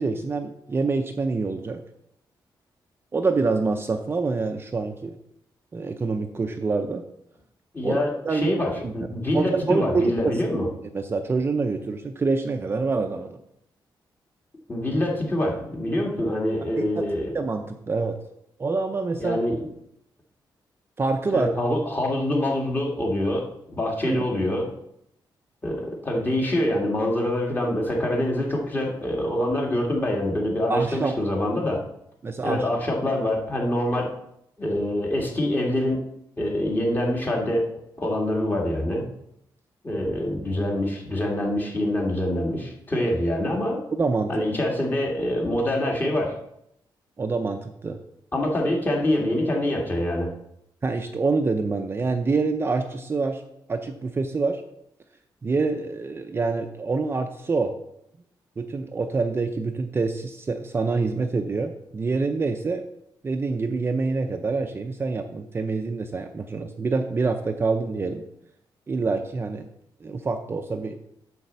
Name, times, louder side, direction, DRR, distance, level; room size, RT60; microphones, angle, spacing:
voice 1, 0.0-1.8 3.1-5.2 5.7-7.0 7.8-8.9 9.3-10.3 10.9-13.4 16.8-17.0 17.3-18.2 18.6-19.4 21.0-21.5 24.1-24.2 30.7-31.2 32.2-32.6 44.0-44.3 47.2-48.0 50.8-53.4 53.7-54.6 55.4-57.7 58.6-62.8 63.2-68.3 68.9-69.7 70.0-71.0, right 4 dB, 30° right, 6 dB, 0.5 m, -26 dB
voice 2, 7.7-10.7 14.7-17.3 19.2-19.6 21.3-23.5 23.7-24.7 25.6-31.8 32.4-34.1 34.6-36.0 36.4-37.7 38.0-39.1 39.8-43.8 44.3-46.4 48.3-50.3, left 1 dB, 25° left, -1 dB, 1.9 m, -25 dB
8.9 x 4.2 x 6.8 m, 0.76 s
wide cardioid pair, 140°, 8 cm